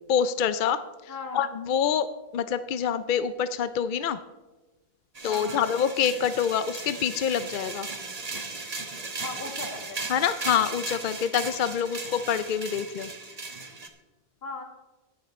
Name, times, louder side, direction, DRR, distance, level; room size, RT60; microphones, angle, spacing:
voice 1, 0.1-0.8 1.0-2.1 2.3-4.2 5.2-7.9 10.1-13.1, left 8 dB, 60° left, 13 dB, 0.6 m, -26 dB
voice 2, 1.1-1.5 5.2-5.6 9.2-10.0 14.4-14.6, left 3 dB, 75° left, 2 dB, 2.0 m, -37 dB
sound 1, 5.1-13.9, right 3 dB, 40° right, 1.1 m, -37 dB
18.5 x 6.8 x 4.2 m, 1.1 s
omnidirectional pair, 1.0 m